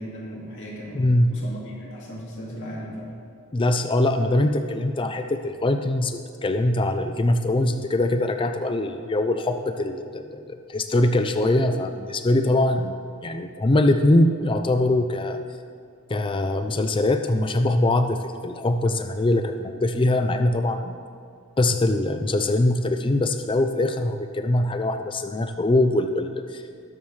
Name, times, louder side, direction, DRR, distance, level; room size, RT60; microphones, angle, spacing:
voice 1, 0.0-1.0 1.3-3.1, equal, 55° left, -4 dB, 2.2 m, -36 dB
voice 2, 0.9-1.3 3.5-15.4 16.1-20.9 21.6-26.6, left 1 dB, 20° left, 7 dB, 0.4 m, -22 dB
19.5 x 7.2 x 3.2 m, 2.3 s
head